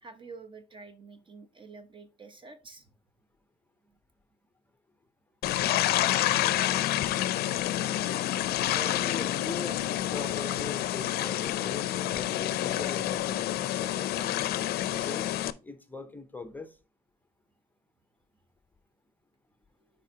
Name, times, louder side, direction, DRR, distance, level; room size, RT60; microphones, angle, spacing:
voice 1, 0.0-2.9 19.8-19.9, right 4 dB, 30° right, 0.9 m, -48 dB
sound 1, 5.4-15.5, left 13 dB, 70° left, 0.5 m, -28 dB
voice 2, 8.7-14.4 14.9-15.3 15.6-16.8, left 3 dB, 10° left, 0.8 m, -41 dB
9.9 x 4.2 x 2.7 m
cardioid pair, 110°, 17 cm